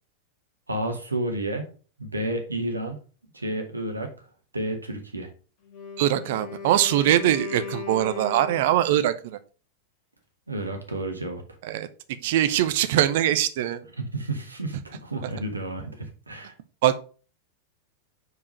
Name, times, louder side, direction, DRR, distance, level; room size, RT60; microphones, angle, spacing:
voice 1, 0.7-1.7 2.0-3.0 3.3-4.1 4.5-5.3 10.5-11.4 14.0-16.5, right 1 dB, 80° right, 4 dB, 1.3 m, -31 dB
Wind instrument woodwind instrument, 5.6-9.1, left 5 dB, 45° left, 1.9 m, -38 dB
voice 2, 6.0-9.4 11.6-13.8 16.8-17.1, right 12 dB, 55° right, 12 dB, 0.6 m, -22 dB
4.8 x 4.8 x 4.9 m, 0.38 s
figure-of-eight pair, 90°, 0 cm